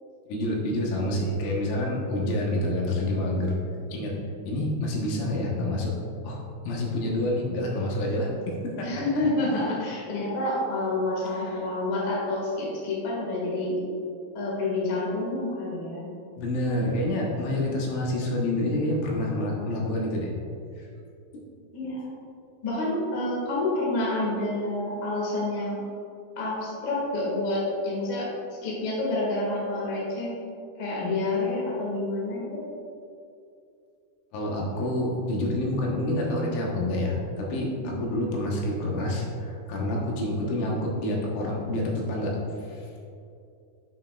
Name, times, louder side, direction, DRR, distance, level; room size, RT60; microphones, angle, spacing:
voice 1, 0.3-3.6 3.9-4.2 4.5-6.0 6.2-6.4 6.7-8.9 11.3-11.7 16.4-20.3 20.8-20.9 21.3-21.5 34.3-42.9, left 1 dB, 85° left, -2 dB, 3.6 m, -28 dB
voice 2, 8.8-13.8 14.3-16.1 21.7-22.1 22.6-25.8 26.3-28.3 28.6-30.3 30.8-32.6 37.9-38.0, left 2 dB, 55° left, -5 dB, 1.3 m, -28 dB
8.4 x 7.6 x 2.4 m, 2.5 s
omnidirectional pair, 5.3 m